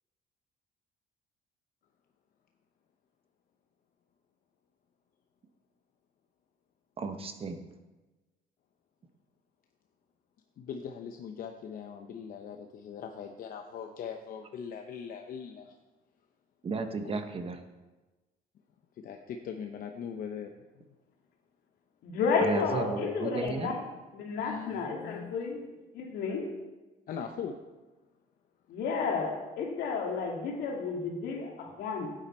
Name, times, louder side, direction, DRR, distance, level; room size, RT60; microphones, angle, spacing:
voice 1, 7.0-7.6 16.6-17.6 22.4-23.7, right 4 dB, 35° right, 7 dB, 1.1 m, -33 dB
voice 2, 10.6-15.7 17.0-17.2 19.0-20.5 24.4-25.4 27.1-27.6, left 7 dB, 55° left, 5 dB, 0.8 m, -40 dB
voice 3, 22.0-23.8 24.1-25.7 25.9-26.5 28.7-32.1, left 5 dB, 75° left, 1 dB, 2.2 m, -31 dB
11.5 x 9.0 x 4.4 m, 1.2 s
cardioid pair, 110°, 17 cm